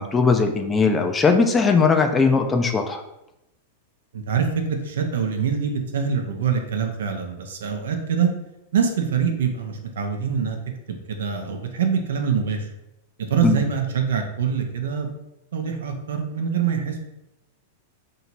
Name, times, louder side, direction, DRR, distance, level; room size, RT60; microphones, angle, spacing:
voice 1, 0.0-3.0 13.4-13.6, left 4 dB, 15° left, 5 dB, 0.4 m, -19 dB
voice 2, 4.1-8.3 8.7-10.6 11.1-12.7 13.3-15.1 15.5-17.0, right 6 dB, 80° right, 4 dB, 0.6 m, -24 dB
2.8 x 2.8 x 4.3 m, 0.87 s
hypercardioid pair, 120°, 0 cm